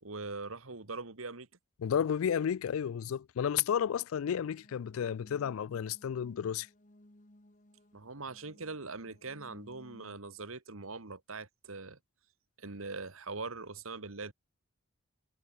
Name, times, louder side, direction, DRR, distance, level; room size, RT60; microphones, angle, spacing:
voice 1, 0.0-1.5 7.9-12.0 12.6-14.3, right 3 dB, 80° right, 1.9 m, -42 dB
voice 2, 1.8-6.7, left 8 dB, 80° left, 0.3 m, -32 dB
sound 1, 4.2-10.2, left 1 dB, 35° left, 1.8 m, -59 dB
head